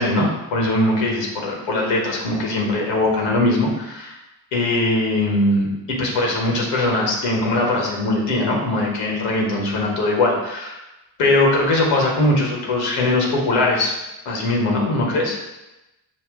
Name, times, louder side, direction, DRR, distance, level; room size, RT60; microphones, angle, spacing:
voice 1, 0.0-4.2 4.5-10.8 11.2-13.9 14.2-15.4, left 2 dB, 80° left, -1 dB, 1.2 m, -20 dB
5.7 x 2.3 x 3.5 m, 0.97 s
hypercardioid pair, 50°, 49 cm